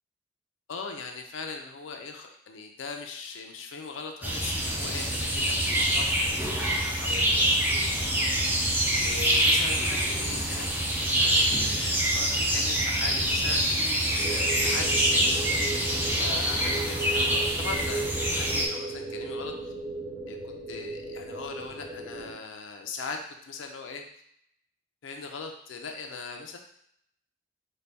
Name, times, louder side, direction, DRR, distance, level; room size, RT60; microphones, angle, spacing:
voice 1, 0.7-8.5 9.0-13.7 14.3-15.6 16.2-19.5 20.3-24.0 25.0-26.6, left 4 dB, 70° left, 3 dB, 0.4 m, -40 dB
sound 1, 4.2-18.7, right 1 dB, 10° right, 0.4 m, -25 dB
sound 2, 14.2-22.3, right 2 dB, 25° right, 0.9 m, -36 dB
4.0 x 2.2 x 3.3 m, 0.70 s
head